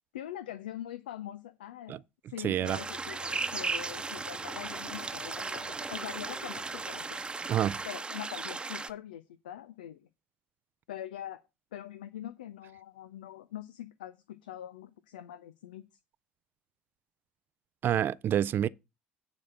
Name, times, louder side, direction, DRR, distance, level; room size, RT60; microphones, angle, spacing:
voice 1, 0.1-2.0 2.3-7.2 7.9-10.1 10.9-11.4 11.7-15.8, left 12 dB, 75° left, 0.5 m, -43 dB
voice 2, 2.4-2.8 7.5-7.8 17.8-18.7, right 10 dB, 45° right, 0.5 m, -28 dB
sound 1, 2.6-8.9, right 3 dB, 20° right, 1.0 m, -36 dB
sound 2, 2.8-7.9, right 1 dB, 5° right, 0.6 m, -53 dB
9.8 x 4.1 x 7.5 m
figure-of-eight pair, 60°, 5 cm